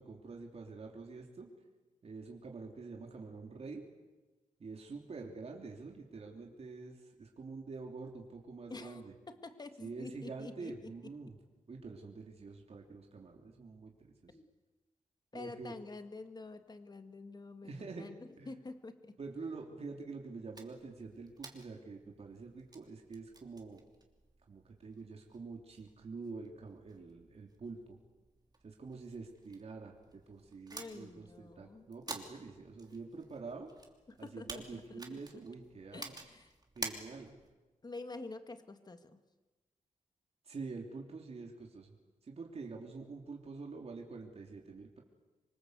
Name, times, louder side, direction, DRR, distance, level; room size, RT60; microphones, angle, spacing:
voice 1, 0.0-1.5 2.0-3.8 4.6-9.1 9.8-11.4 11.7-14.1 15.3-15.8 17.6-18.1 18.4-18.5 19.2-23.8 24.5-28.0 28.6-33.7 34.2-36.2 36.7-37.3 40.4-41.9 42.2-45.0, right 4 dB, 50° right, 1 dB, 3.3 m, -46 dB
voice 2, 8.7-10.9 11.3-11.4 14.3-14.5 15.3-19.2 30.7-31.9 34.1-35.2 35.9-36.5 37.8-39.2, left 3 dB, 30° left, 8 dB, 1.9 m, -48 dB
sound 1, 20.5-37.5, right 3 dB, 30° right, 3.0 m, -51 dB
27.0 x 24.0 x 8.2 m, 1.2 s
wide cardioid pair, 140°, 13 cm